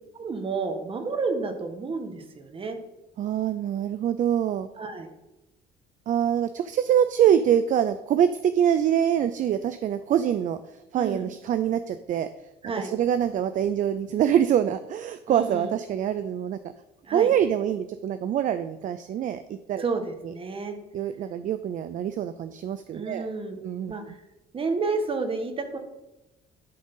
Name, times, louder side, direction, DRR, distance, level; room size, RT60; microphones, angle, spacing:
voice 1, 0.1-2.8 4.8-5.1 11.0-11.2 12.6-12.9 15.3-15.7 17.1-17.3 19.8-20.7 22.9-23.6 23.9-24.0 24.5-25.8, right 4 dB, 30° right, 6 dB, 1.4 m, -30 dB
voice 2, 3.2-4.7 6.1-12.3 12.8-16.6 17.1-19.8 20.2-20.3 20.9-23.3 23.6-24.2, right 9 dB, 50° right, 11 dB, 0.5 m, -25 dB
11.5 x 3.9 x 5.4 m, 0.97 s
cardioid pair, 110°, 17 cm